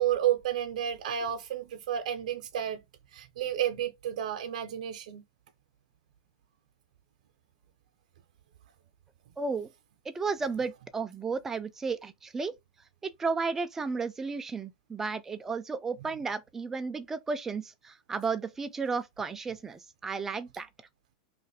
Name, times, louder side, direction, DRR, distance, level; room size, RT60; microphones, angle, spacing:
voice 1, 0.0-2.8 3.1-5.2, right 10 dB, 75° right, 0.5 m, -31 dB
voice 2, 9.4-9.7 10.1-12.5 13.0-20.7, right 4 dB, 10° right, 0.3 m, -33 dB
2.9 x 2.5 x 4.0 m
supercardioid pair, 165°, 4 cm